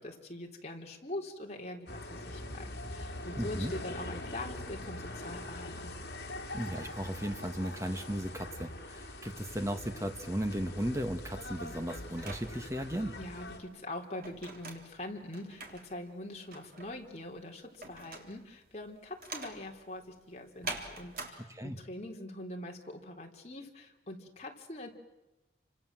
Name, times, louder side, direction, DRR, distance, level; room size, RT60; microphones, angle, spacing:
voice 1, 0.0-5.9 13.2-24.9, left 1 dB, 35° left, 1 dB, 3.8 m, -43 dB
sound 1, 1.9-13.6, left 1 dB, 65° left, 3.6 m, -43 dB
voice 2, 3.4-3.7 6.5-13.2 21.6-21.8, equal, 15° right, 6 dB, 1.8 m, -36 dB
sound 2, 11.4-21.3, right 3 dB, 50° right, 3.7 m, -45 dB
30.0 x 25.5 x 7.6 m, 1.0 s
head